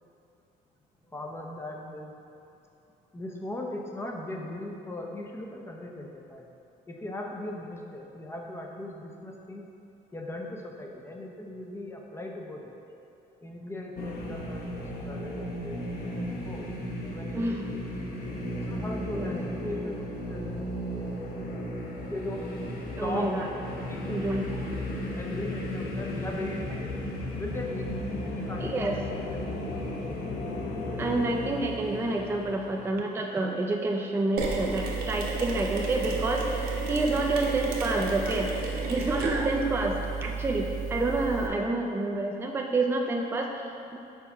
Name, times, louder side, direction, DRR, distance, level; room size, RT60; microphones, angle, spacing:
voice 1, 1.0-2.1 3.1-6.5 6.9-9.6 10.1-12.7 13.4-16.7 17.0-17.6 18.7-21.7 22.1-22.4 23.0-23.5 23.9-24.2 25.1-28.0 28.5-28.8 29.1-29.5 36.0-36.2 37.9-38.1, left 1 dB, 15° left, 0 dB, 0.7 m, -38 dB
sound 1, 13.9-32.9, left 1 dB, 55° left, 0.9 m, -35 dB
voice 2, 17.4-17.7 19.1-19.3 23.0-23.5 24.1-24.7 25.4-25.5 28.6-29.0 31.0-38.5 38.9-44.0, right 2 dB, 15° right, 1 dB, 0.4 m, -28 dB
Mechanisms, 34.4-41.5, right 4 dB, 65° right, 1.0 m, -32 dB
4.6 x 4.1 x 5.6 m, 2.8 s
cardioid pair, 110°, 17 cm